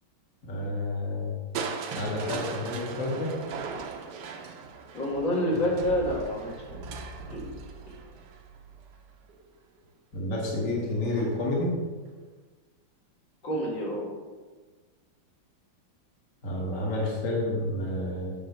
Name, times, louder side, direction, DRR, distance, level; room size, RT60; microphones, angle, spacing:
voice 1, 0.4-1.4 1.9-3.4 10.1-11.8 16.4-18.3, left 1 dB, 45° left, -3 dB, 1.7 m, -30 dB
Crushing, 1.5-9.5 11.1-11.6 12.1-12.2, right 5 dB, 70° right, 1.2 m, -39 dB
voice 2, 4.9-6.8 7.3-7.5 13.4-14.1, equal, 70° left, -4 dB, 2.5 m, -28 dB
8.7 x 3.5 x 6.7 m, 1.4 s
omnidirectional pair, 2.1 m